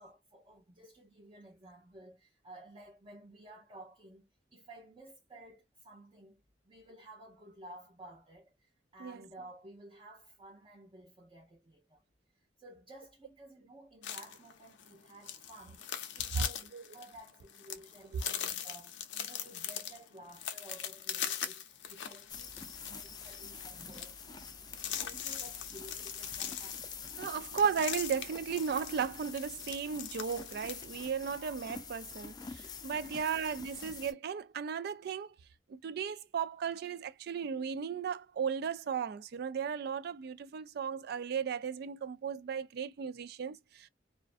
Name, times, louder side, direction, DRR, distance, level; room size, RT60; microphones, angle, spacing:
voice 1, 0.0-12.0 12.6-15.9 16.2-22.5 22.8-24.2 24.8-26.9 31.4-31.6 33.3-33.4, right 1 dB, 30° right, 0.7 m, -54 dB
sound 1, 14.0-30.8, left 9 dB, 80° left, 0.5 m, -41 dB
sound 2, 22.3-34.1, left 5 dB, 25° left, 0.4 m, -46 dB
voice 2, 27.2-35.3 35.7-43.9, right 7 dB, 60° right, 0.3 m, -35 dB
2.5 x 2.1 x 2.4 m
head